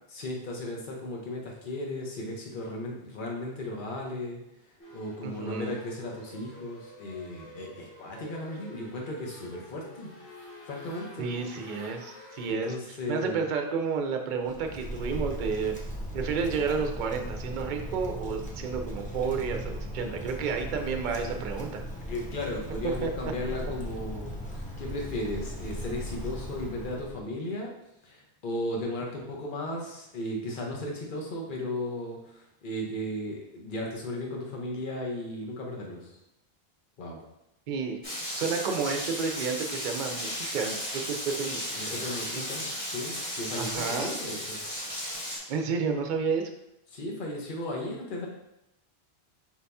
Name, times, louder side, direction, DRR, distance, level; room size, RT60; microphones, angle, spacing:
voice 1, 0.1-4.4 4.9-10.1 10.6-11.3 12.5-13.4 21.1-21.2 22.0-27.7 28.0-36.1 37.0-37.2 41.7-44.6 46.9-48.3, left 1 dB, 50° left, -1 dB, 1.0 m, -35 dB
sound 1, 4.8-12.5, left 1 dB, 75° left, 1.4 m, -49 dB
voice 2, 5.2-5.7 11.2-12.7 13.1-15.7 16.1-21.8 22.8-23.1 37.7-38.0 38.3-41.8 42.4-42.5 43.6-44.2 45.5-46.4, right 5 dB, 55° right, 4 dB, 0.6 m, -31 dB
Wind, 14.4-27.3, equal, 10° left, 0.5 m, -38 dB
Rain, 38.0-45.4, equal, 30° left, 1.4 m, -35 dB
4.6 x 2.7 x 3.4 m, 0.85 s
omnidirectional pair, 1.1 m